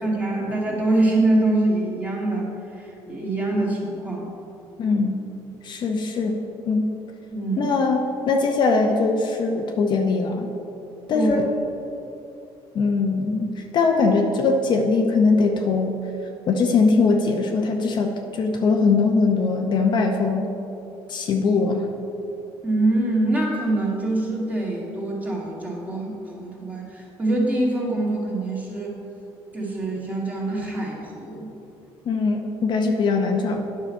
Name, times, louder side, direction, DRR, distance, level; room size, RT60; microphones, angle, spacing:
voice 1, 0.0-4.3 7.3-7.7 11.1-11.4 22.6-29.0 29.5-31.5, right 2 dB, 15° right, -4 dB, 1.9 m, -24 dB
voice 2, 4.8-5.2 5.6-6.4 6.7-6.9 7.6-10.5 11.1-11.5 12.7-16.0 16.5-20.5 21.1-21.8 32.1-33.7, left 4 dB, 50° left, 2 dB, 0.7 m, -21 dB
9.4 x 5.7 x 4.6 m, 3.0 s
cardioid pair, 110°, 10 cm